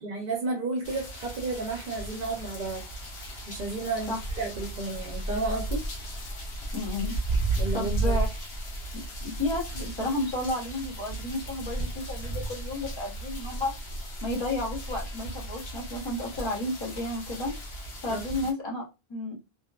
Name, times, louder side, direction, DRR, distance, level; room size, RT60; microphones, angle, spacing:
voice 1, 0.0-2.8 3.5-5.9 7.6-8.2 18.1-18.2, right 3 dB, 60° right, 0.6 m, -32 dB
sound 1, 0.8-18.5, right 2 dB, 80° left, 1.0 m, -34 dB
voice 2, 6.7-7.1 7.7-8.3 9.2-13.7 14.2-17.5 18.0-18.8 19.1-19.4, left 2 dB, 30° left, 0.8 m, -32 dB
2.7 x 2.1 x 2.2 m
omnidirectional pair, 1.0 m